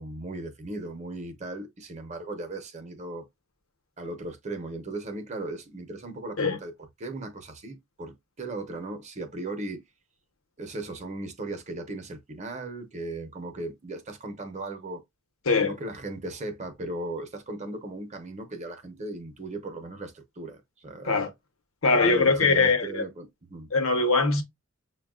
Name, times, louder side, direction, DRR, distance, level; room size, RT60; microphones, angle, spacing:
voice 1, 0.0-3.3 4.0-6.7 7.0-9.8 10.6-15.0 15.6-21.3 22.0-23.7, right 2 dB, 35° right, 0.7 m, -37 dB
voice 2, 15.5-15.8 21.0-21.3 21.8-23.0 23.7-24.4, left 3 dB, 85° left, 0.9 m, -22 dB
6.8 x 2.3 x 2.3 m
head